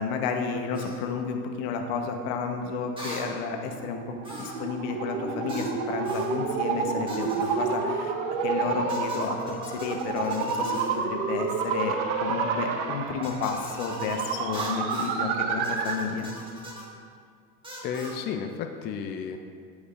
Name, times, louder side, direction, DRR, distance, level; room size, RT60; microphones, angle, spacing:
voice 1, 0.0-8.1 8.4-10.8 11.1-16.3, left 5 dB, 55° left, 4 dB, 1.1 m, -31 dB
sound 1, 0.7-1.0 3.0-3.3 4.2-4.7 5.5-5.8 6.1-6.3 7.1-7.6 8.9-11.0 13.2-15.2 15.6-16.9 17.6-18.2, equal, 10° right, 1.6 m, -41 dB
sound 2, 3.4-16.1, right 5 dB, 50° right, 0.8 m, -30 dB
voice 2, 17.8-19.4, left 7 dB, 25° left, 5 dB, 0.3 m, -32 dB
13.5 x 4.9 x 2.5 m, 2.2 s
hypercardioid pair, 95°, 45 cm